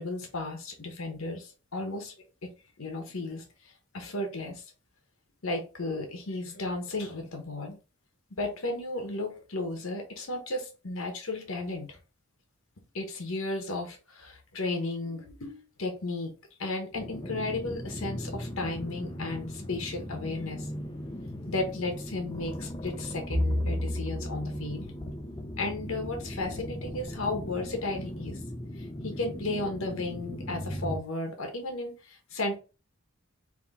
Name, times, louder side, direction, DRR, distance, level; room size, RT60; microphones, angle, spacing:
voice 1, 0.0-2.1 2.8-3.4 3.9-4.6 5.4-7.8 8.4-12.0 12.9-16.3 16.6-20.7 21.5-24.9 25.6-28.4 29.0-32.6, left 2 dB, 70° left, 4 dB, 1.0 m, -34 dB
sound 1, 16.9-31.0, equal, 20° left, 0.5 m, -38 dB
Bowed string instrument, 23.3-27.7, left 1 dB, 15° right, 0.9 m, -34 dB
3.7 x 2.8 x 4.1 m, 0.32 s
head